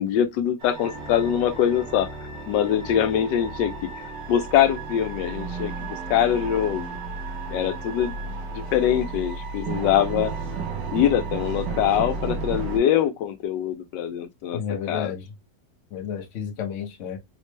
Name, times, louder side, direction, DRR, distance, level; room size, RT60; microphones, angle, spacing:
voice 1, 0.0-2.1 2.5-3.9 4.3-6.9 7.5-10.3 10.9-14.6 14.9-15.1, left 10 dB, 85° left, 1.3 m, -23 dB
sound 1, 0.6-12.8, right 4 dB, 85° right, 1.4 m, -33 dB
voice 2, 14.5-15.3 15.9-17.2, left 7 dB, 60° left, 0.8 m, -31 dB
4.1 x 2.1 x 3.0 m
omnidirectional pair, 1.9 m